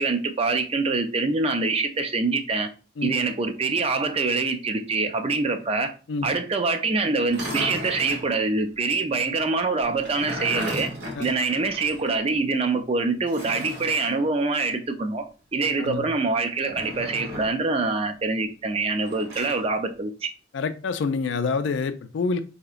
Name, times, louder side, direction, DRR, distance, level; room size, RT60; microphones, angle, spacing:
voice 1, 0.0-2.7 3.0-5.9 6.2-10.9 11.2-15.3 15.5-20.3, right 3 dB, 30° right, 0.4 m, -25 dB
sound 1, 7.2-8.3 9.8-12.1 12.4-12.5 13.3-14.2 16.6-17.6 19.0-19.6, equal, 55° right, 1.1 m, -35 dB
voice 2, 15.6-16.0 20.5-22.4, left 4 dB, 65° left, 0.4 m, -27 dB
4.1 x 2.8 x 2.4 m
head